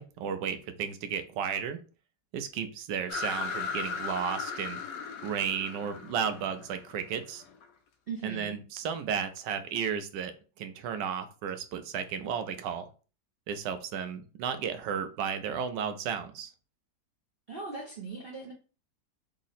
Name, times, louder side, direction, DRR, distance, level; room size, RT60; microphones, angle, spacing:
voice 1, 0.0-1.8 2.3-4.8 5.2-7.4 8.2-10.3 10.6-12.9 13.5-16.5, right 7 dB, 80° right, 9 dB, 1.2 m, -33 dB
sound 1, 3.1-7.6, left 5 dB, 75° left, 1.2 m, -37 dB
voice 2, 8.1-8.6 17.5-18.5, right 4 dB, 60° right, -2 dB, 0.6 m, -39 dB
3.6 x 2.0 x 4.0 m, 0.36 s
omnidirectional pair, 1.9 m